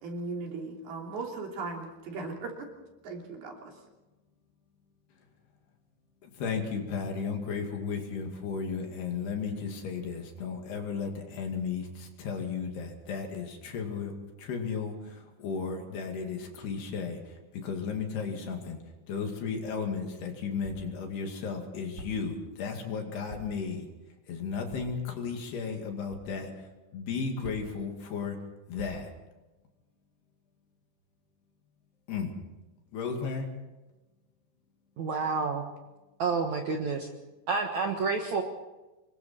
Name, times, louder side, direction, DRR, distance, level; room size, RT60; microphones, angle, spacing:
voice 1, 0.0-2.7 3.0-3.7, right 3 dB, 55° right, 0 dB, 4.8 m, -37 dB
voice 2, 6.2-14.1 14.4-18.8 19.1-23.9 24.3-28.4 28.7-29.1 32.1-32.3 32.9-33.5, left 5 dB, 60° left, 3 dB, 4.1 m, -34 dB
sound 1, 19.6-19.7 20.6-21.0 22.0-22.4 23.3-23.7 24.7-25.0 26.1-26.3 27.4-27.9 28.8-29.2, right 1 dB, 20° right, 4.2 m, -46 dB
voice 3, 35.0-35.6 36.2-37.1 37.5-38.4, right 4 dB, 75° right, 3 dB, 1.7 m, -29 dB
26.5 x 22.5 x 4.4 m, 1.1 s
omnidirectional pair, 5.5 m